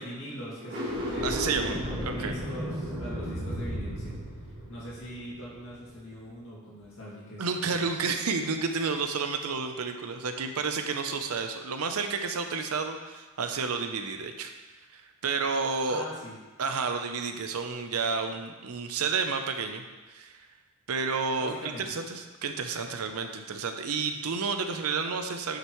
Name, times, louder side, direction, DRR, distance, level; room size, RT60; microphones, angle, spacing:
voice 1, 0.0-7.4 7.8-8.0 15.8-16.4 21.3-21.9, equal, 60° left, -7 dB, 2.2 m, -42 dB
sound 1, 0.6-5.9, equal, 55° right, 2.9 m, -34 dB
voice 2, 1.2-2.3 7.4-14.5 14.9-16.0 16.6-19.8 20.1-20.5 20.9-25.6, right 5 dB, 85° right, 6 dB, 0.7 m, -31 dB
10.0 x 6.6 x 3.1 m, 1.2 s
head